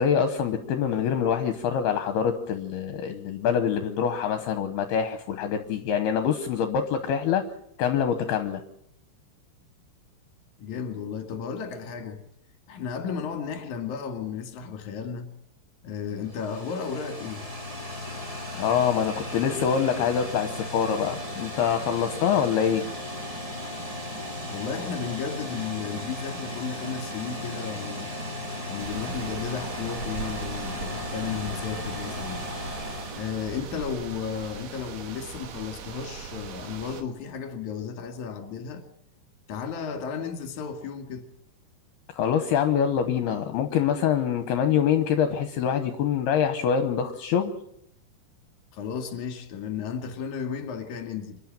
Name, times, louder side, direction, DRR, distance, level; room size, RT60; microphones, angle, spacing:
voice 1, 0.0-7.4 7.8-8.6 18.6-22.8 42.1-47.5, left 8 dB, 75° left, 2.9 m, -25 dB
voice 2, 10.6-12.2 12.7-15.3 15.8-17.5 24.5-28.1 28.7-32.4 33.1-38.8 39.5-41.3 48.7-51.4, left 7 dB, 50° left, 3.1 m, -34 dB
sound 1, 16.0-34.2, left 1 dB, 10° right, 2.0 m, -36 dB
sound 2, 28.8-37.0, right 6 dB, 65° right, 3.5 m, -39 dB
26.5 x 11.0 x 8.9 m
omnidirectional pair, 5.0 m